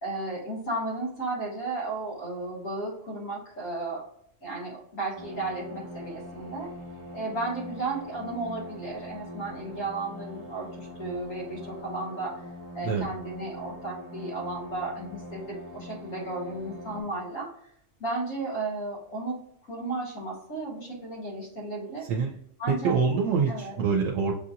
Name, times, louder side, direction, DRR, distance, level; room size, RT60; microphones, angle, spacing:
voice 1, 0.0-4.0 4.4-6.7 7.1-12.4 12.7-17.5 18.0-19.4 19.7-22.1 22.6-23.0 23.5-23.8, right 2 dB, 90° left, -5 dB, 2.2 m, -34 dB
sound 1, 5.2-17.0, left 1 dB, 25° right, 0.9 m, -43 dB
voice 2, 22.7-24.3, right 5 dB, 80° right, 1 dB, 1.0 m, -25 dB
6.5 x 2.8 x 2.5 m, 0.70 s
omnidirectional pair, 1.3 m